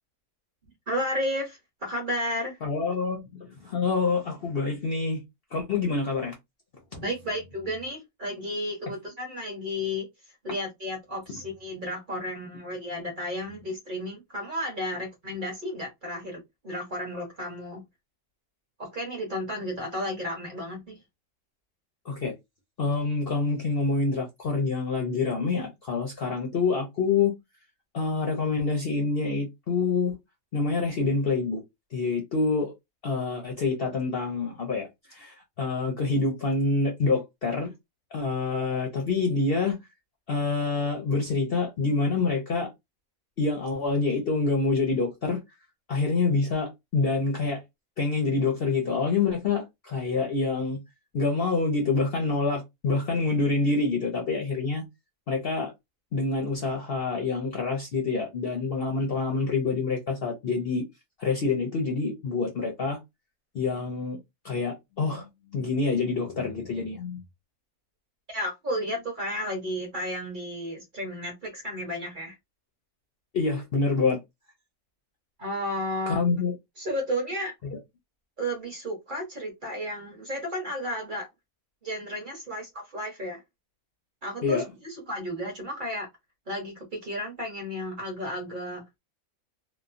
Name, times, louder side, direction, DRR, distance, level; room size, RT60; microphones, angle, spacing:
voice 1, 0.9-2.6 6.9-10.1 10.4-17.8 18.8-21.0 68.3-72.3 75.4-76.2 76.8-77.5 78.4-81.3 81.8-83.4 84.2-86.1 86.5-88.8, equal, 40° right, 1.0 m, -33 dB
voice 2, 2.6-5.2 5.5-6.3 22.1-22.3 22.8-27.3 27.9-30.2 30.5-31.6 31.9-32.7 33.0-37.7 38.1-39.8 40.3-42.7 43.4-45.4 45.9-47.6 48.0-50.8 51.1-54.8 55.3-55.7 56.1-60.8 61.2-63.0 63.5-64.2 64.4-67.2 73.3-74.2 76.1-76.5 77.6-77.8 84.4-84.6, left 4 dB, 55° left, 0.7 m, -27 dB
3.0 x 2.1 x 2.4 m
omnidirectional pair, 1.5 m